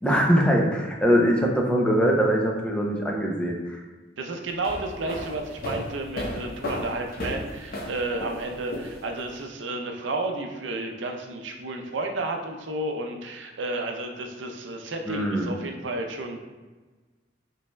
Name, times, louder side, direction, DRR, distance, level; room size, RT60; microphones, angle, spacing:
voice 1, 0.0-3.8 15.1-15.5, equal, 5° left, -1 dB, 0.5 m, -22 dB
voice 2, 4.2-16.4, right 2 dB, 80° right, 3 dB, 0.6 m, -32 dB
sound 1, 4.5-9.3, left 1 dB, 55° left, 0.7 m, -34 dB
5.2 x 3.4 x 2.2 m, 1.3 s
head